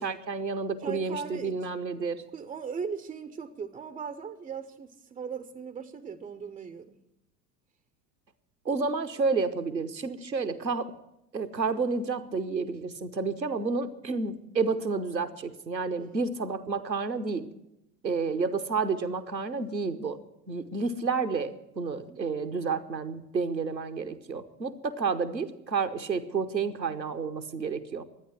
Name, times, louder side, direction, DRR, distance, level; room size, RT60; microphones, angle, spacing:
voice 1, 0.0-2.2 8.6-10.9 11.3-17.5 18.0-20.2 20.5-28.0, right 4 dB, 90° right, 10 dB, 0.9 m, -30 dB
voice 2, 0.8-1.5 2.3-7.0 16.0-16.2 22.1-22.3, right 6 dB, 15° right, 10 dB, 0.4 m, -38 dB
12.0 x 9.4 x 9.8 m, 0.89 s
figure-of-eight pair, 75°, 50 cm